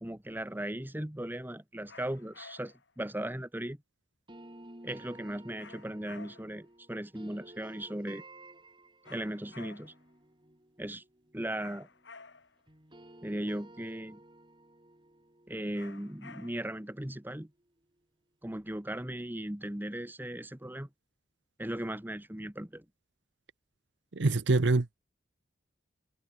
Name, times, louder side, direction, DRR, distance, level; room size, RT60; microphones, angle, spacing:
voice 1, 0.0-3.8 4.8-8.2 9.1-9.9 10.8-11.0 11.3-11.9 13.2-14.2 15.5-17.5 18.4-20.9 21.6-22.8, right 1 dB, 10° right, 1.3 m, -37 dB
sound 1, 1.9-2.9 5.6-6.7 9.0-10.1 11.6-12.7 15.7-16.8, left 4 dB, 80° left, 3.5 m, -52 dB
sound 2, 4.3-12.4 12.7-17.6, right 1 dB, 25° right, 7.2 m, -55 dB
voice 2, 24.1-25.0, right 2 dB, 75° right, 0.9 m, -25 dB
head